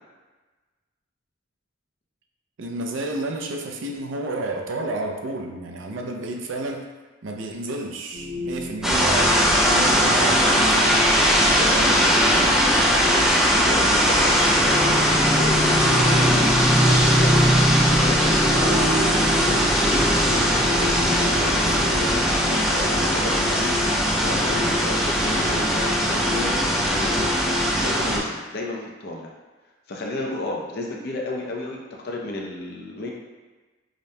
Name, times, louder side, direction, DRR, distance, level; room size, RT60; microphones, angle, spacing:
voice 1, 2.6-6.9 7.2-11.0, right 2 dB, 70° right, 3 dB, 0.5 m, -31 dB
sound 1, 8.1-27.9, left 2 dB, 55° right, 1.4 m, -33 dB
sound 2, 8.8-28.2, equal, 5° right, 0.4 m, -19 dB
voice 2, 11.5-23.8 24.2-26.5 26.9-29.3 29.9-31.8 32.0-33.1, left 1 dB, 55° left, -1 dB, 0.6 m, -32 dB
4.9 x 2.2 x 2.7 m, 1.3 s
head